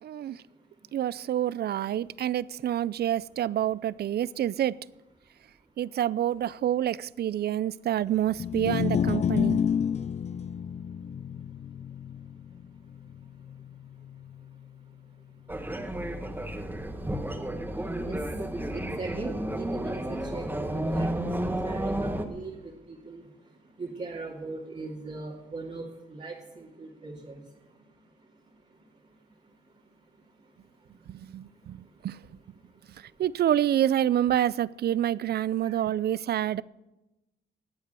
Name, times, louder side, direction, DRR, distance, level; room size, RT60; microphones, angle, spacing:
voice 1, 0.0-0.4 0.9-4.8 5.8-9.6 31.1-32.2 33.2-36.6, right 11 dB, 55° right, 20 dB, 0.5 m, -27 dB
sound 1, 8.3-14.6, left 8 dB, 35° left, 0.4 m, -30 dB
sound 2, 15.5-22.2, right 1 dB, 10° right, 1.6 m, -31 dB
voice 2, 18.7-21.1 21.4-23.3 23.8-27.4 35.6-35.8, right 3 dB, 35° right, -4 dB, 2.4 m, -39 dB
18.5 x 8.1 x 6.9 m, 1.0 s
cardioid pair, 90°, 20 cm